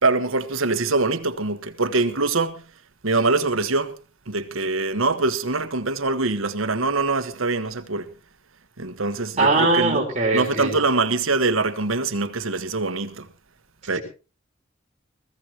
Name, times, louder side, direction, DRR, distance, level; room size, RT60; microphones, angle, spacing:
voice 1, 0.0-2.6 3.0-4.0 4.3-8.1 8.8-10.0 10.3-13.3 13.9-14.0, right 3 dB, 90° right, 1.4 m, -23 dB
voice 2, 9.4-10.8, right 3 dB, 35° right, 4.2 m, -20 dB
21.5 x 15.5 x 3.0 m
head